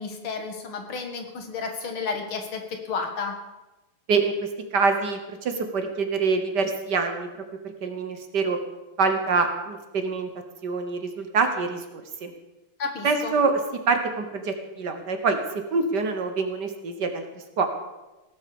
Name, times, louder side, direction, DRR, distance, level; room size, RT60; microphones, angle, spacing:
voice 1, 0.0-3.4 12.8-13.4, left 5 dB, 75° left, 4 dB, 2.6 m, -32 dB
voice 2, 4.1-7.3 7.6-8.6 9.0-10.3 10.6-12.3 13.0-13.6 13.9-15.4 15.7-17.2 17.6-17.7, right 4 dB, 55° right, 6 dB, 1.7 m, -25 dB
17.0 x 7.9 x 7.0 m, 1.1 s
omnidirectional pair, 2.4 m